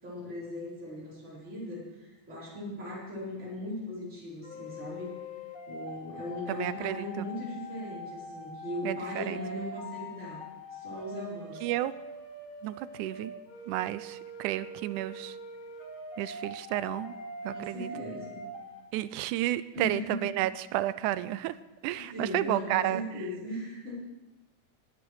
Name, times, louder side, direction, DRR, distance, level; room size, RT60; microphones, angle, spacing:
voice 1, 0.0-5.1 5.7-10.4 10.7-11.6 17.5-18.4 19.7-20.1 22.1-23.9, left 1 dB, 20° right, -8 dB, 4.8 m, -38 dB
sound 1, 4.4-18.8, left 1 dB, 40° left, 1.4 m, -43 dB
voice 2, 6.5-7.3 8.8-9.4 11.6-11.9 12.6-13.3 13.7-15.4 16.2-17.1 17.4-17.9 18.9-21.6 21.8-23.0, right 14 dB, 85° right, 16 dB, 2.0 m, -31 dB
19.5 x 8.2 x 4.7 m, 1.1 s
omnidirectional pair, 3.5 m